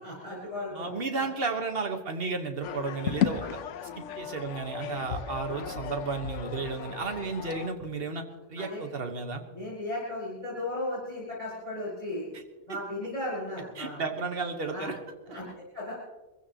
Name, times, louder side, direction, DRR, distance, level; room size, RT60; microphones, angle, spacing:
voice 1, 0.0-1.2 3.4-3.5 5.5-5.7 8.6-8.8 9.5-12.3 12.7-14.0 14.7-14.9 15.3-15.4 15.7-15.9, left 1 dB, 35° left, -9 dB, 5.8 m, -36 dB
voice 2, 0.7-3.4 4.0-8.2 8.5-9.4 12.3-12.4 13.8-14.9, right 4 dB, 50° right, 5 dB, 1.6 m, -33 dB
sound 1, 2.6-7.7, left 9 dB, 75° left, 1.0 m, -34 dB
22.5 x 15.5 x 3.0 m, 1.2 s
omnidirectional pair, 1.3 m